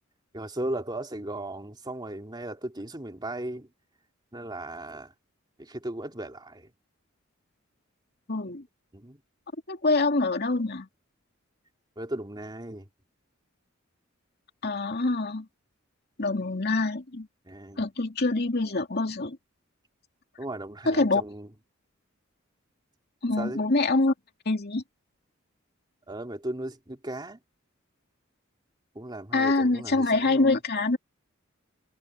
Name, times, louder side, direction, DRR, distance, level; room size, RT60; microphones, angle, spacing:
voice 1, 0.3-3.7 4.3-5.1 5.6-6.7 8.9-9.2 12.0-12.9 17.5-17.8 20.4-21.5 23.4-23.6 26.1-27.4 28.9-30.6, right 1 dB, 20° right, 2.7 m, -36 dB
voice 2, 8.3-8.6 9.7-10.9 14.6-15.5 16.2-17.3 17.8-19.4 20.9-21.2 23.2-24.1 24.5-24.8 29.3-31.0, left 2 dB, 50° left, 2.7 m, -25 dB
head